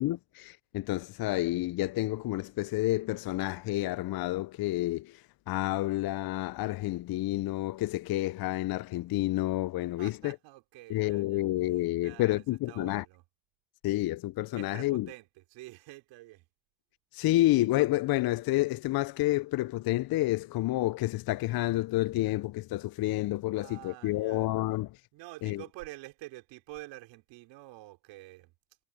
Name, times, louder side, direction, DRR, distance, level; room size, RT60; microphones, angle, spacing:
voice 1, 0.0-10.3 10.9-13.0 13.8-15.1 17.1-24.9 25.4-25.6, left 17 dB, 55° left, 0.6 m, -29 dB
voice 2, 10.0-11.4 11.7-13.2 14.5-16.5 23.5-24.5 25.1-28.5, right 19 dB, 80° right, 4.3 m, -48 dB
supercardioid pair, 65°, 43 cm